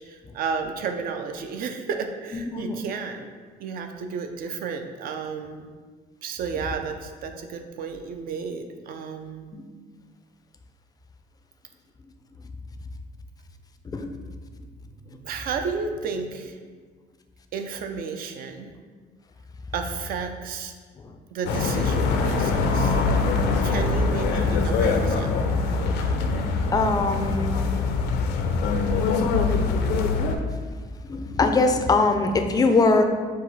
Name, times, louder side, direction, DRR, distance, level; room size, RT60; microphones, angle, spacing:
voice 1, 0.0-3.3 3.6-5.7 6.2-9.5 15.2-16.6 17.5-18.7 19.7-20.7 21.3-23.0 23.6-25.4, right 5 dB, 60° right, 6 dB, 0.5 m, -32 dB
voice 2, 2.3-2.8 9.5-9.7 13.9-14.1 26.7-27.6 31.1-33.1, left 3 dB, 20° left, 6 dB, 0.4 m, -21 dB
sound 1, 21.5-30.4, left 4 dB, 80° left, 0.5 m, -23 dB
4.6 x 2.4 x 4.0 m, 1.5 s
cardioid pair, 110°, 17 cm